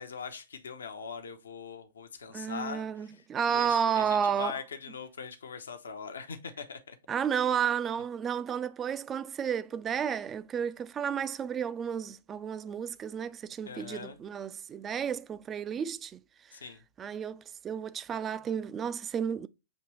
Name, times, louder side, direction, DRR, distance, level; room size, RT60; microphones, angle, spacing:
voice 1, 0.0-3.2 3.5-7.0 13.7-14.2 16.5-16.8, left 6 dB, 70° left, 0.6 m, -41 dB
voice 2, 2.3-4.6 7.1-16.2 17.0-19.5, right 8 dB, 20° right, 0.3 m, -32 dB
6.2 x 2.9 x 2.9 m
figure-of-eight pair, 105°, 0 cm